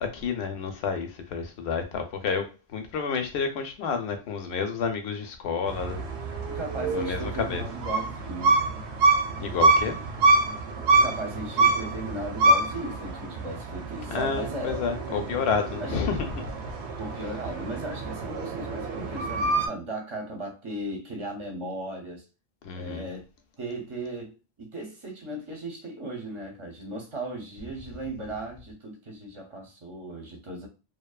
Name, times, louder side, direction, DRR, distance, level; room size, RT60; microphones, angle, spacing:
voice 1, 0.0-6.0 6.9-7.6 9.4-10.0 14.1-16.4 22.6-23.1, left 5 dB, 75° left, 0.8 m, -30 dB
sound 1, 5.7-19.7, right 3 dB, 90° right, 0.9 m, -26 dB
voice 2, 6.5-8.6 10.9-15.3 15.8-16.0 17.0-22.2 22.7-23.3 23.6-30.7, right 1 dB, 30° right, 0.7 m, -37 dB
2.6 x 2.2 x 2.3 m
omnidirectional pair, 1.1 m